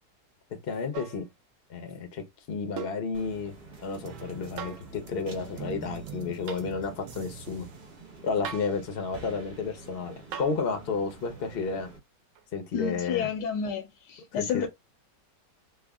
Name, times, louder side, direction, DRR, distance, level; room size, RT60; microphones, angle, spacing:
voice 1, 0.6-1.3 1.7-3.5 3.8-7.7 8.2-11.9 12.5-13.3 14.3-14.7, left 4 dB, 55° left, 0.6 m, -32 dB
sound 1, 0.9-1.2 2.8-3.1 4.6-4.9 6.5-6.7 8.4-8.8 10.3-10.6 12.4-12.5, right 8 dB, 85° right, 1.3 m, -39 dB
sound 2, 3.1-12.0, right 3 dB, 30° right, 0.9 m, -49 dB
sound 3, 3.8-7.9, right 7 dB, 65° right, 1.1 m, -44 dB
voice 2, 12.7-14.7, left 8 dB, 80° left, 1.2 m, -30 dB
3.3 x 2.1 x 3.5 m
omnidirectional pair, 1.9 m